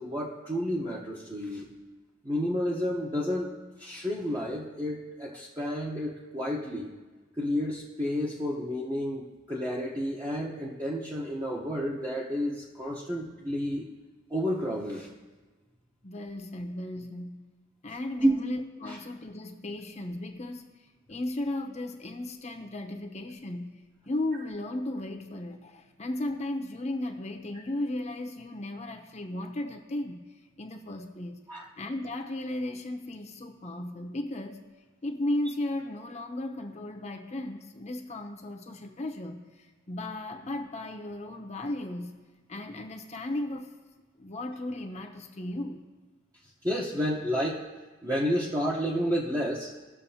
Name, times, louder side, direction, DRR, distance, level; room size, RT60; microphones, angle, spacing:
voice 1, 0.0-1.7 2.2-3.5 3.8-6.9 7.4-13.9 14.3-15.1 18.2-18.3 18.8-19.0 31.5-31.7 46.6-47.6 48.0-49.7, equal, 20° right, -4 dB, 0.9 m, -30 dB
voice 2, 16.0-17.4 17.8-31.4 31.8-34.6 35.0-42.1 42.5-43.7 44.2-45.8, left 1 dB, 35° left, 3 dB, 0.8 m, -35 dB
19.0 x 6.5 x 2.8 m, 1.3 s
head